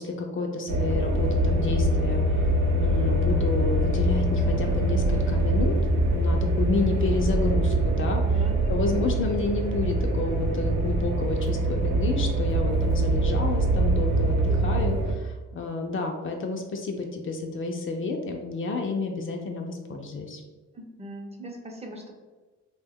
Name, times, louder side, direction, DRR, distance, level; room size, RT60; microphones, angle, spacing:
voice 1, 0.0-2.5 2.7-5.7 6.1-8.4 8.7-20.4, left 3 dB, 45° left, 2 dB, 0.4 m, -30 dB
sound 1, 0.7-15.1, right 1 dB, 70° right, 0.6 m, -24 dB
voice 2, 8.3-9.2 20.7-22.1, equal, 20° right, 0 dB, 0.6 m, -40 dB
2.7 x 2.2 x 3.4 m, 1.3 s
cardioid pair, 90°, 30 cm